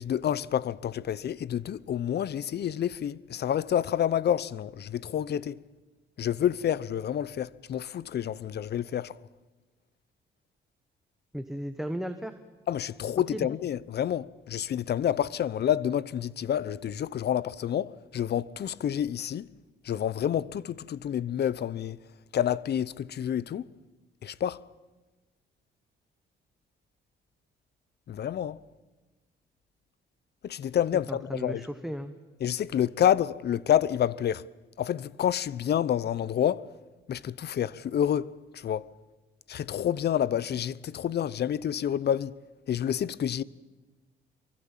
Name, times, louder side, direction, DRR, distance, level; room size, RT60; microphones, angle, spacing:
voice 1, 0.0-5.6 6.2-9.1 12.7-19.5 19.8-22.0 22.3-23.7 24.2-24.6 28.1-28.6 30.4-31.6 32.4-34.5 34.8-36.7 37.1-38.9 39.5-42.3 42.7-43.4, left 10 dB, 55° left, 0.8 m, -28 dB
voice 2, 11.3-12.4 13.3-13.5 31.1-32.1, equal, ahead, 1.3 m, -35 dB
26.0 x 23.5 x 7.5 m
cardioid pair, 90°, 20 cm